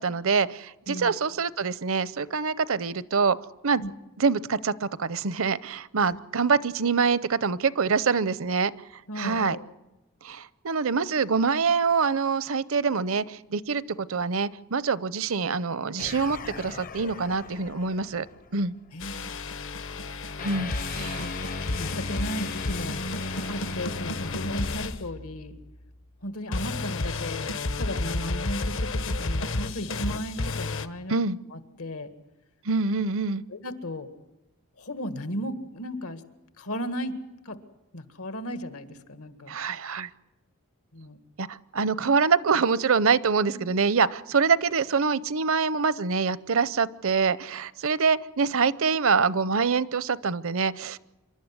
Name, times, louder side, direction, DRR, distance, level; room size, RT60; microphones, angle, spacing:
voice 1, 0.0-3.4 3.6-3.8 4.2-8.7 9.2-9.6 10.2-18.3 18.5-18.7 20.4-21.3 31.1-31.4 32.7-33.4 39.5-40.1 41.4-51.0, right 5 dB, 65° right, 18 dB, 0.7 m, -25 dB
voice 2, 9.1-9.7 18.9-19.4 21.0-21.3 21.8-23.0 23.5-25.6 26.2-27.5 27.8-31.2 31.5-32.1 33.5-34.1 34.8-36.2 36.6-37.2 37.5-37.6 37.9-39.6 40.9-41.2 43.5-43.6, equal, 80° left, 10 dB, 1.8 m, -35 dB
sound 1, 16.0-18.8 20.4-24.7, left 2 dB, 40° left, 0.7 m, -37 dB
sound 2, 19.0-25.7 26.5-30.9, left 3 dB, 60° left, 0.9 m, -32 dB
26.5 x 12.0 x 9.6 m, 1.0 s
head